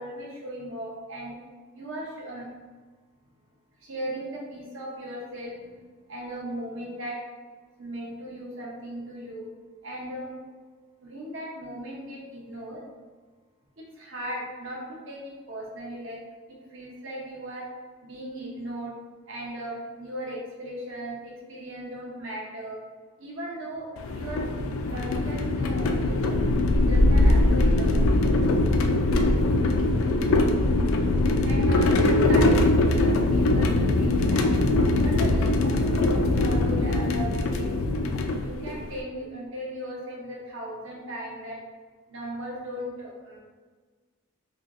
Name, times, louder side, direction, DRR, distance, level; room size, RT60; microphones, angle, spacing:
voice 1, 0.0-1.4 1.7-2.5 3.8-7.2 7.8-9.5 9.8-10.4 11.0-12.8 13.8-16.2 16.5-17.7 18.0-19.0 19.3-22.8 23.2-23.9 24.1-24.5 24.9-26.1 26.7-28.0 31.4-34.6 35.0-37.7 38.4-41.6 42.1-43.4, right 1 dB, 60° right, -3 dB, 0.8 m, -37 dB
sound 1, 24.0-39.0, left 2 dB, 70° left, 0.3 m, -22 dB
3.3 x 2.8 x 2.6 m, 1.4 s
head